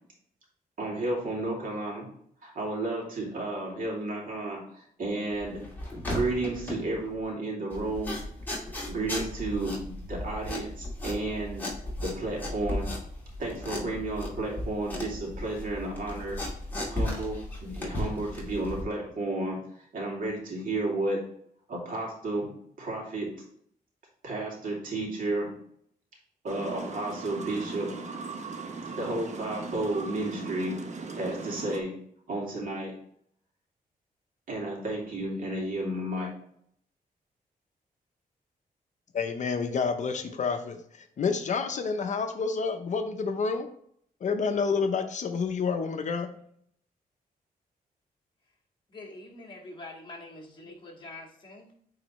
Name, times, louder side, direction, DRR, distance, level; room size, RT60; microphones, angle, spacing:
voice 1, 0.8-2.1 2.4-5.6 6.1-8.2 8.9-11.6 12.0-12.9 13.4-16.4 16.9-19.6 19.9-21.2 21.7-22.5 22.8-23.3 24.2-25.5 26.4-27.9 28.9-30.7 31.1-31.9 32.3-32.9 34.5-36.3, right 2 dB, 65° right, -2 dB, 2.6 m, -32 dB
sound 1, 5.3-7.2 7.7-18.8, left 1 dB, 10° left, 2.5 m, -36 dB
sound 2, 26.5-31.8, right 4 dB, 50° right, 0.9 m, -39 dB
voice 2, 39.1-43.7 44.2-46.3, left 5 dB, 55° left, 6 dB, 0.7 m, -29 dB
voice 3, 48.9-51.7, left 2 dB, 30° left, -1 dB, 1.8 m, -45 dB
8.8 x 3.9 x 3.1 m, 0.66 s
wide cardioid pair, 125°, 15 cm